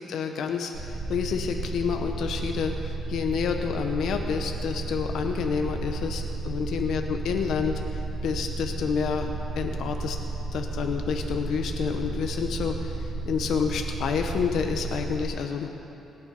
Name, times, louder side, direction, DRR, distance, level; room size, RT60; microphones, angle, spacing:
voice 1, 0.0-9.3 9.6-10.2 10.5-15.7, left 6 dB, 65° left, 4 dB, 1.0 m, -29 dB
sound 1, 0.7-15.2, right 2 dB, 50° right, 2.1 m, -33 dB
25.0 x 9.7 x 5.4 m, 3.0 s
cardioid pair, 160°, 0 cm